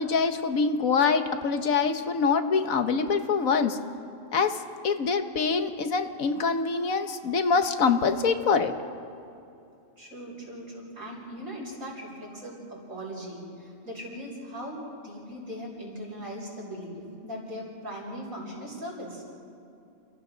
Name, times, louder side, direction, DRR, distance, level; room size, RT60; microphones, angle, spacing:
voice 1, 0.0-3.8 4.3-4.6 4.8-8.7, left 5 dB, 75° left, 8 dB, 1.5 m, -25 dB
voice 2, 10.0-19.2, equal, 80° right, -3 dB, 6.4 m, -39 dB
29.5 x 27.0 x 4.0 m, 2.7 s
omnidirectional pair, 1.4 m